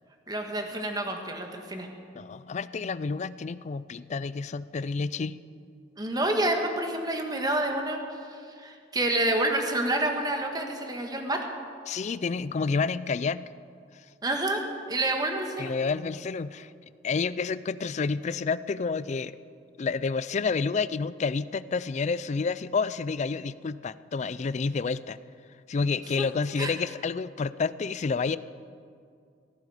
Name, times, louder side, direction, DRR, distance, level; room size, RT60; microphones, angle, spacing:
voice 1, 0.3-1.9 6.0-8.0 8.3-11.5 14.2-14.6 14.9-15.7 26.2-26.3 26.6-26.7, right 1 dB, 20° right, 3 dB, 1.5 m, -28 dB
voice 2, 2.1-5.4 11.9-13.5 13.9-14.1 15.6-16.7 17.0-19.4 19.8-25.2 25.7-28.4, left 4 dB, 40° left, 16 dB, 0.4 m, -29 dB
16.5 x 14.5 x 4.9 m, 2.3 s
head